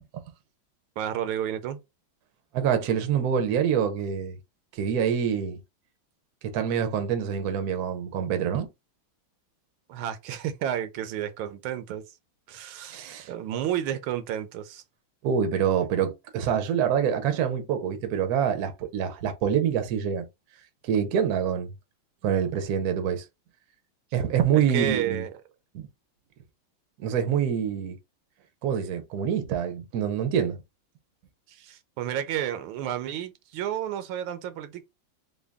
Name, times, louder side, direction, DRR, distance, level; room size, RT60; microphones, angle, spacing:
voice 1, 1.0-1.8 9.9-12.2 12.5-13.0 13.3-14.8 24.5-25.3 31.5-34.8, right 10 dB, 85° right, 1.5 m, -31 dB
voice 2, 2.5-4.4 4.7-5.6 6.4-8.7 12.9-13.3 15.2-20.2 20.8-21.7 22.2-23.2 24.1-25.2 25.7-25.9 27.0-28.0 28.6-30.6, right 8 dB, 65° right, 1.0 m, -26 dB
3.7 x 2.2 x 3.4 m
omnidirectional pair, 2.2 m